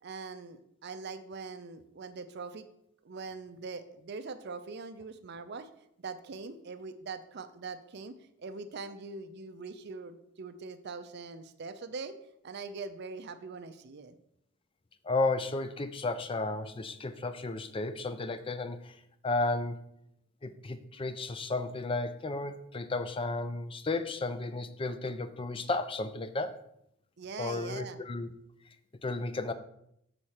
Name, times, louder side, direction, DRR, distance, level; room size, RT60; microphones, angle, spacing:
voice 1, 0.0-2.7 3.0-5.7 6.0-12.1 12.4-14.2 27.2-28.0, right 4 dB, 50° right, 9 dB, 0.5 m, -42 dB
voice 2, 15.0-19.0 19.2-19.8 20.4-26.6 27.4-28.3 29.0-29.5, left 3 dB, 25° left, 11 dB, 0.5 m, -33 dB
6.8 x 4.3 x 6.3 m, 0.76 s
head